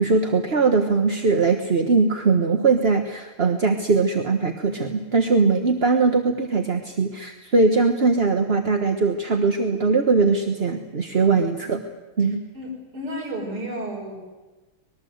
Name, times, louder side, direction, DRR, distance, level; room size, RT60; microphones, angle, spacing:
voice 1, 0.0-11.8 12.2-12.4, right 4 dB, 35° right, 5 dB, 1.2 m, -20 dB
voice 2, 12.5-14.2, right 1 dB, 85° right, -2 dB, 6.4 m, -32 dB
25.5 x 20.5 x 8.0 m, 1.2 s
omnidirectional pair, 2.4 m